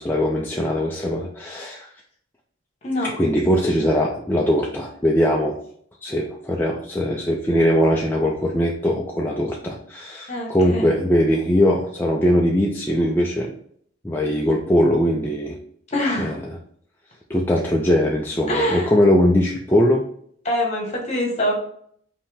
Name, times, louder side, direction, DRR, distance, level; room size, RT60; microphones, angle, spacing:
voice 1, 0.0-1.9 3.2-5.6 6.0-13.5 14.0-15.6 16.2-16.6 17.3-20.1, equal, 10° left, -2 dB, 0.4 m, -20 dB
voice 2, 10.3-10.9 15.9-16.4 18.5-18.9 20.4-21.5, left 1 dB, 35° left, 0 dB, 1.3 m, -24 dB
5.3 x 2.8 x 3.5 m, 0.64 s
head